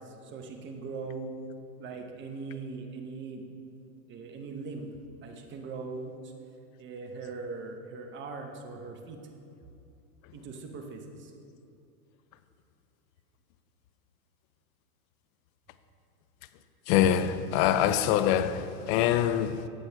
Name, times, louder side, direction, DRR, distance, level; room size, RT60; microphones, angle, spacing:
voice 1, 0.0-1.3 1.8-3.5 4.1-4.9 5.2-6.3 6.8-9.2 10.3-11.3, right 4 dB, 25° right, 0.9 m, -40 dB
voice 2, 16.9-19.7, left 10 dB, 40° left, 0.4 m, -24 dB
8.6 x 7.7 x 3.3 m
hypercardioid pair, 110°, 45 cm